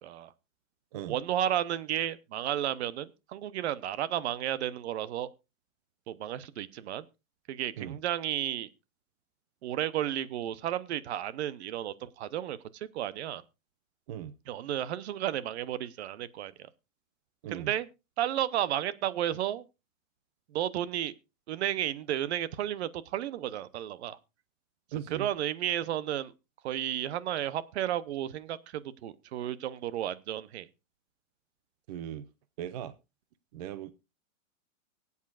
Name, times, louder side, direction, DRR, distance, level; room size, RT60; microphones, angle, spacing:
voice 1, 0.0-0.3 1.1-5.3 6.1-7.0 7.5-8.7 9.6-13.4 14.5-16.5 17.5-17.9 18.2-19.7 20.5-21.1 21.5-24.2 25.1-26.3 26.6-30.7, right 11 dB, 55° right, 0.9 m, -32 dB
voice 2, 24.9-25.3 31.9-32.2 32.6-32.9 33.5-33.9, right 10 dB, 30° right, 0.5 m, -38 dB
24.0 x 8.3 x 2.4 m
hypercardioid pair, 160°, 40 cm